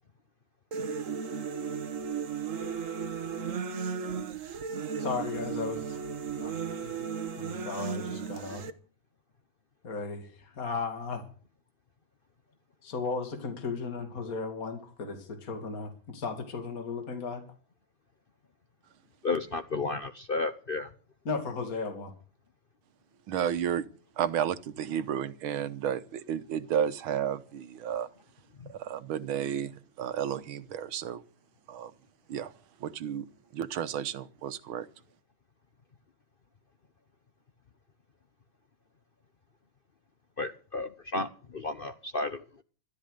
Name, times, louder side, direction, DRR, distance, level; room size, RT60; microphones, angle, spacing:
sound 1, 0.7-8.7, right 6 dB, 45° right, 1.2 m, -35 dB
voice 1, 5.0-6.0 6.4-7.1 7.4-8.6 9.8-11.2 12.8-17.4 21.2-22.1, left 4 dB, 45° left, 2.8 m, -35 dB
voice 2, 19.2-20.9 40.4-42.6, left 3 dB, 65° left, 0.5 m, -33 dB
voice 3, 23.3-23.8 24.2-28.1 28.7-31.2 31.7-31.9 32.3-32.5 32.8-33.3 33.5-34.9, right 9 dB, 85° right, 1.8 m, -32 dB
13.5 x 13.0 x 6.6 m
omnidirectional pair, 2.2 m